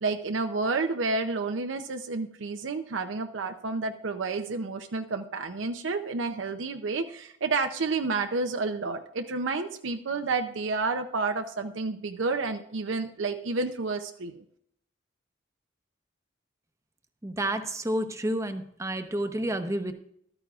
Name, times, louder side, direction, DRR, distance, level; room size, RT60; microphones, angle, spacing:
voice 1, 0.0-14.4, right 3 dB, 80° right, 6 dB, 0.6 m, -30 dB
voice 2, 17.2-19.9, right 1 dB, 15° right, 8 dB, 0.8 m, -30 dB
14.0 x 12.5 x 2.4 m, 0.69 s
head